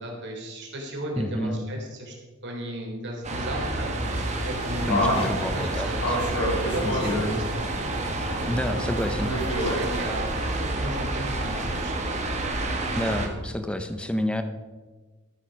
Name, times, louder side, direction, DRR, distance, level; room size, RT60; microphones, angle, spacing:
voice 1, 0.0-2.1 2.4-6.0 6.6-7.6 9.2-12.1, right 1 dB, 55° right, 0 dB, 3.6 m, -35 dB
voice 2, 1.2-1.6 4.9-6.2 6.8-7.4 8.5-9.3 13.0-14.4, equal, 5° left, 8 dB, 0.6 m, -29 dB
sound 1, 3.2-13.3, right 2 dB, 35° right, 1.8 m, -29 dB
sound 2, 4.0-10.0, equal, 70° left, 4.2 m, -30 dB
13.5 x 8.9 x 5.2 m, 1.3 s
head